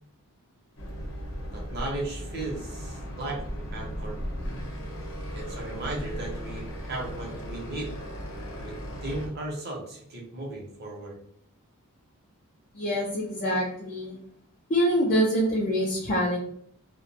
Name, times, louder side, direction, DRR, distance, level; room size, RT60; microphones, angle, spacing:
sound 1, 0.8-9.3, equal, 60° left, 0.7 m, -36 dB
voice 1, 1.5-4.2 5.3-7.9 8.6-8.8 9.0-11.2, right 2 dB, 45° right, -2 dB, 0.7 m, -36 dB
voice 2, 12.7-14.2 14.7-16.4, equal, 35° left, -3 dB, 0.4 m, -25 dB
2.3 x 2.1 x 2.6 m, 0.65 s
head